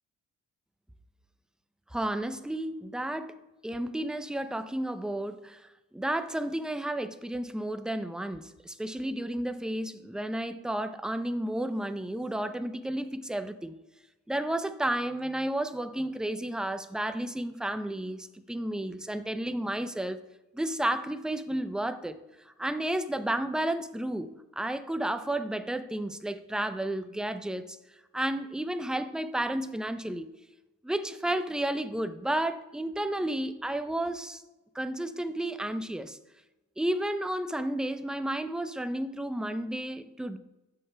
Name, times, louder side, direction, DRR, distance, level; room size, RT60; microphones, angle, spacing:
voice 1, 1.9-3.4 3.6-13.7 14.3-20.2 20.5-22.2 22.6-27.8 28.1-30.3 30.8-34.4 34.7-36.2 36.8-40.4, right 1 dB, ahead, 0.5 m, -32 dB
11.5 x 6.6 x 3.3 m
cardioid pair, 90°, 30 cm